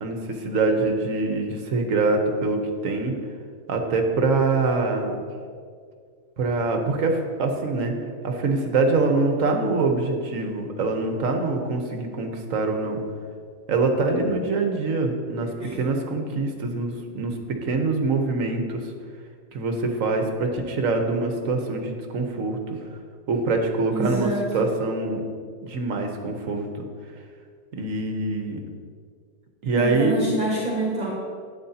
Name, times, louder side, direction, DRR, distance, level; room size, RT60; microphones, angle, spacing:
voice 1, 0.0-3.1 3.7-5.2 6.4-7.9 8.2-13.0 13.7-18.9 19.5-22.8 23.3-25.2 25.6-26.7 27.8-28.6 29.6-30.1, right 3 dB, 60° right, 4 dB, 1.3 m, -24 dB
voice 2, 15.4-15.7 23.9-24.6 29.7-31.1, right 1 dB, 30° right, -4 dB, 1.6 m, -27 dB
11.5 x 9.1 x 2.8 m, 2.1 s
omnidirectional pair, 1.6 m